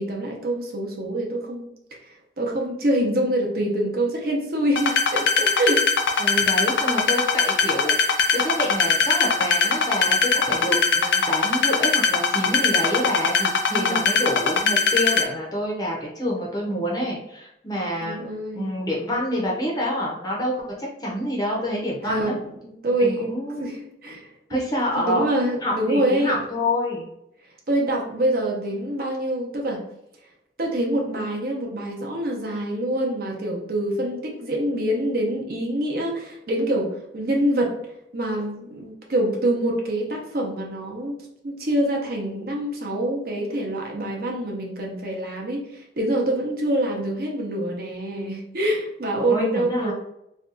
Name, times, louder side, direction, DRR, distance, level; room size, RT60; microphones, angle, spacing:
voice 1, 0.0-1.7 2.1-5.9 13.7-14.1 18.0-18.7 22.0-22.3 22.8-23.3 23.6-24.6 24.9-26.4 27.7-29.8 30.6-37.7 38.1-41.2 41.4-45.7 46.0-49.9, right 1 dB, 55° right, 0 dB, 0.7 m, -25 dB
sound 1, 4.8-15.2, left 5 dB, 85° left, 0.4 m, -20 dB
voice 2, 6.2-8.0 8.3-18.2 18.5-22.4 23.0-23.8 24.5-25.2 25.6-27.1 49.1-49.9, left 1 dB, 20° left, -3 dB, 0.6 m, -27 dB
2.6 x 2.3 x 3.8 m, 0.79 s
head